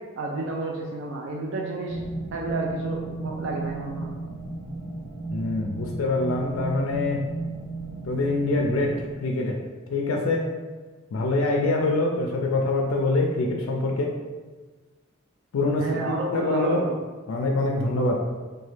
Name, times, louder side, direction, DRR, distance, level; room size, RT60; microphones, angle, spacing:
voice 1, 0.2-2.0 2.3-4.2 15.8-17.0, right 2 dB, 65° right, -1 dB, 0.4 m, -31 dB
sound 1, 1.9-9.2, right 3 dB, 45° right, 1.0 m, -35 dB
voice 2, 5.3-7.3 8.0-9.6 9.9-10.5 11.1-14.2 15.5-16.0 16.3-16.9 17.3-18.3, left 2 dB, 85° left, 0 dB, 0.4 m, -25 dB
2.9 x 2.2 x 3.1 m, 1.3 s
head